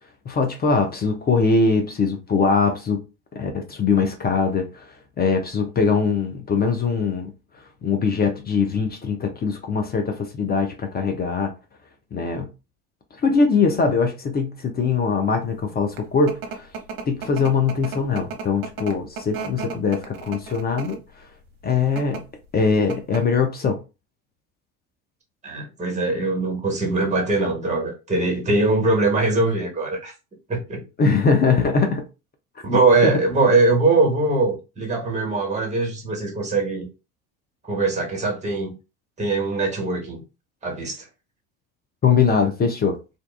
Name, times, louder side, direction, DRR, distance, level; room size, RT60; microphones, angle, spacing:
voice 1, 0.3-3.0 3.3-4.9 5.2-7.3 7.8-11.5 12.1-12.5 13.2-16.7 17.1-21.0 21.6-22.2 22.5-23.8 31.0-32.0 33.0-33.1 42.0-43.0, left 5 dB, 25° left, 0.4 m, -21 dB
sound 1, 15.7-21.1 21.8-22.2 22.6-22.7 22.9-23.4, right 5 dB, 50° right, 0.8 m, -34 dB
voice 2, 25.4-30.1 30.5-30.9 32.6-36.9 37.6-38.7 39.2-40.2 40.6-41.0, right 3 dB, 15° right, 1.2 m, -21 dB
2.5 x 2.2 x 2.3 m
hypercardioid pair, 65°, 44 cm